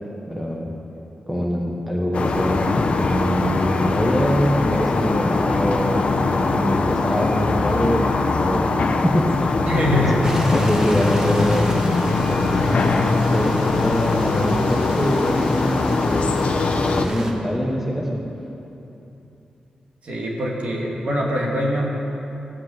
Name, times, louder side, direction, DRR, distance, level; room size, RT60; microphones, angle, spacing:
voice 1, 0.3-0.7 1.3-9.6 9.9-10.1 10.5-18.2, equal, 5° right, -2 dB, 1.4 m, -24 dB
sound 1, 2.1-17.0, left 3 dB, 55° left, 1.0 m, -21 dB
voice 2, 9.6-10.3 20.0-21.9, equal, 55° right, -2 dB, 2.5 m, -23 dB
Stream, 10.2-17.3, right 1 dB, 25° right, 1.4 m, -34 dB
14.0 x 9.6 x 8.0 m, 2.9 s
wide cardioid pair, 140°, 3 cm